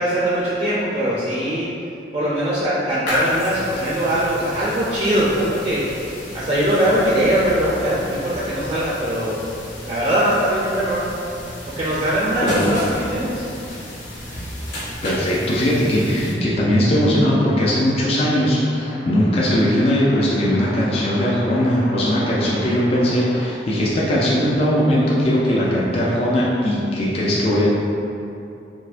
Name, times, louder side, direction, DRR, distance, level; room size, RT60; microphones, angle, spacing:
voice 1, 0.0-1.7 2.1-9.4 9.8-11.1 11.7-13.4, right 1 dB, 30° right, -8 dB, 0.4 m, -21 dB
sound 1, 3.1-16.3, left 1 dB, 90° left, 0.9 m, -33 dB
voice 2, 15.0-27.7, equal, 35° left, -6 dB, 0.4 m, -19 dB
sound 2, 17.7-23.4, left 1 dB, 55° left, 0.9 m, -37 dB
4.5 x 2.1 x 2.5 m, 2.8 s
head